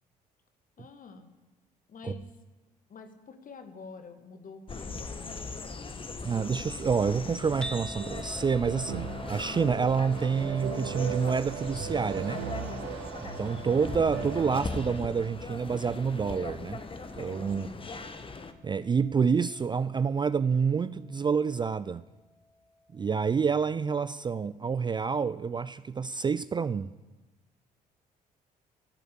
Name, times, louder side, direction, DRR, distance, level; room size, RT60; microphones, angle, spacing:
voice 1, 0.8-1.3 1.9-2.3 2.9-6.0 17.4-17.9, left 4 dB, 40° left, 1.9 m, -47 dB
sound 1, 4.7-18.5, left 3 dB, 25° left, 1.4 m, -40 dB
voice 2, 6.2-12.5 13.2-16.8 17.1-17.7 18.6-22.0 22.9-26.9, right 6 dB, 20° right, 0.4 m, -28 dB
sound 2, 7.6-23.8, equal, 5° left, 1.5 m, -50 dB
sound 3, 8.0-15.0, right 6 dB, 60° right, 1.4 m, -38 dB
14.5 x 7.8 x 8.3 m
figure-of-eight pair, 50°, 20 cm